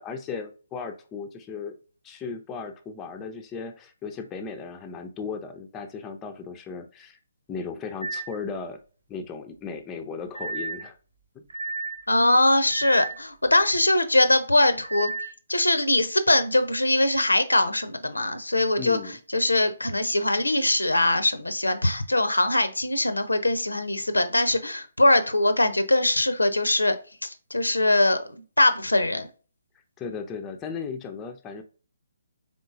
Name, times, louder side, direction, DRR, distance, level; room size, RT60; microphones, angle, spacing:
voice 1, 0.0-1.8 2.0-7.2 7.5-8.8 9.1-11.0 11.3-11.5 18.8-19.1 30.0-31.6, left 5 dB, 15° left, 6 dB, 0.4 m, -36 dB
sound 1, 8.0-8.4 10.3-10.9 11.5-12.0 12.7-13.2 14.8-15.3, right 3 dB, 75° right, 1.0 m, -32 dB
voice 2, 12.1-15.1 15.5-19.0 19.3-27.0 27.2-29.3, left 1 dB, 80° left, 11 dB, 0.5 m, -22 dB
3.7 x 3.6 x 2.5 m, 0.36 s
figure-of-eight pair, 135°, 0 cm